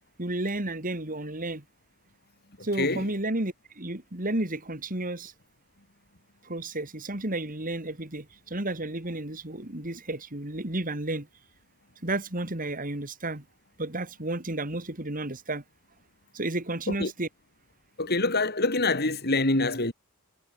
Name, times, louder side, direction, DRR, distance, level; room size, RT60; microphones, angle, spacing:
voice 1, 0.2-1.6 2.6-5.3 6.4-11.3 12.0-13.4 13.8-15.6 16.3-17.3, right 2 dB, 40° right, 3.3 m, -32 dB
voice 2, 2.6-3.0 16.9-17.1 18.0-19.9, left 2 dB, 50° left, 4.6 m, -26 dB
head